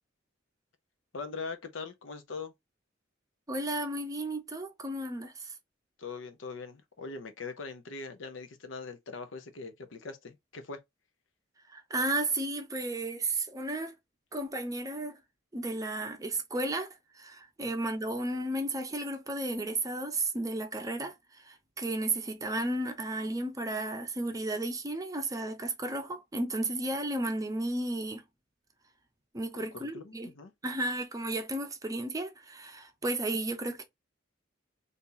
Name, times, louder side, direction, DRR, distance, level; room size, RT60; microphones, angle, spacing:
voice 1, 1.1-2.5 6.0-10.8 17.6-17.7 29.5-30.5, left 4 dB, 75° left, 0.7 m, -41 dB
voice 2, 3.5-5.5 11.7-13.9 14.3-15.2 15.5-16.9 17.1-28.2 29.3-30.3 30.6-33.8, right 2 dB, 20° right, 0.6 m, -33 dB
2.8 x 2.6 x 3.8 m
head